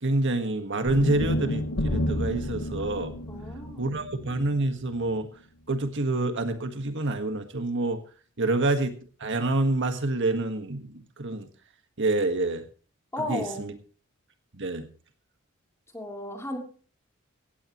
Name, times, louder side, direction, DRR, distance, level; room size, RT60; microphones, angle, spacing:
voice 1, 0.0-3.1 3.8-5.3 5.7-8.0 8.4-8.9 9.2-11.5 12.0-12.6 13.2-13.7 14.6-14.9, right 2 dB, 60° right, 7 dB, 1.6 m, -27 dB
sound 1, 0.8-5.1, left 1 dB, 80° left, 1.5 m, -31 dB
voice 2, 3.3-4.0 8.4-8.5 13.1-13.6 15.9-16.6, left 1 dB, 15° left, 2 dB, 3.4 m, -34 dB
16.5 x 16.5 x 3.1 m, 0.39 s
head